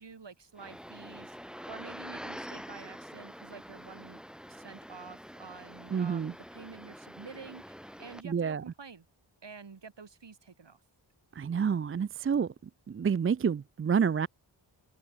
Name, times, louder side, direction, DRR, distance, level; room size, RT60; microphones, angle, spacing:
voice 1, 0.0-9.0 9.4-10.8, right 5 dB, 65° right, 5.8 m, -49 dB
sound 1, 0.6-8.2, equal, ahead, 6.5 m, -46 dB
voice 2, 5.9-6.3 8.2-8.6 11.4-12.5 12.9-14.3, right 6 dB, 30° right, 0.4 m, -28 dB
cardioid pair, 55°, 46 cm